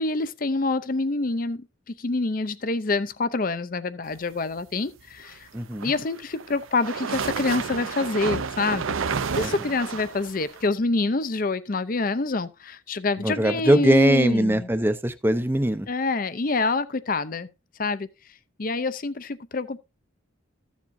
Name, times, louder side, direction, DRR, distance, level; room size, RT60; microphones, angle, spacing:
voice 1, 0.0-5.5 5.8-9.0 9.3-14.7 15.9-17.5 17.8-18.1 18.6-19.8, left 3 dB, 40° left, 0.5 m, -26 dB
voice 2, 5.5-5.9 9.4-9.5 13.2-15.9, right 1 dB, 10° right, 0.5 m, -21 dB
sound 1, 5.6-10.7, right 5 dB, 75° right, 0.6 m, -31 dB
14.5 x 7.2 x 2.6 m
head